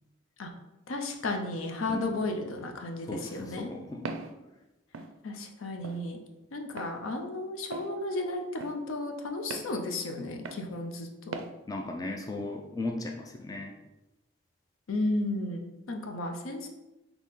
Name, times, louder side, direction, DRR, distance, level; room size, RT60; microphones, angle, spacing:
voice 1, 0.9-3.7 5.2-6.2 6.5-11.4 14.9-16.7, left 2 dB, 85° left, 4 dB, 0.6 m, -33 dB
voice 2, 3.1-4.1 11.7-13.7, left 2 dB, 20° left, 2 dB, 0.3 m, -36 dB
Walk footsteps, 4.1-4.3 4.9-5.1 5.8-6.0 6.8-6.9 7.7-7.9 8.6-8.8 9.5-9.7 10.5-10.7 11.3-11.5, right 4 dB, 80° right, 0.4 m, -38 dB
4.1 x 2.8 x 3.6 m, 0.99 s
head